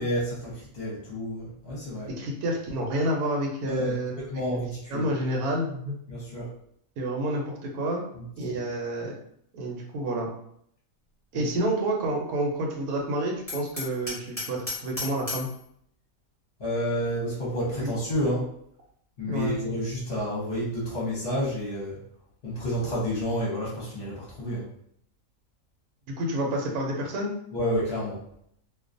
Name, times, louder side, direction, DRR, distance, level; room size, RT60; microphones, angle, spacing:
voice 1, 0.0-2.1 3.6-4.0 4.3-5.1 6.1-6.5 8.4-8.5 11.3-11.4 16.6-18.4 19.2-22.0 22.4-24.7 27.5-28.2, equal, 50° left, -5 dB, 0.8 m, -30 dB
voice 2, 2.1-4.2 4.9-6.0 7.0-8.0 8.4-9.1 9.5-10.3 11.3-15.5 17.8-17.9 19.2-19.6 26.2-27.3, right 1 dB, 90° right, 0 dB, 1.1 m, -29 dB
Hammer, 13.5-15.6, left 3 dB, 15° left, 1.2 m, -35 dB
2.4 x 2.3 x 2.5 m, 0.69 s
omnidirectional pair, 1.5 m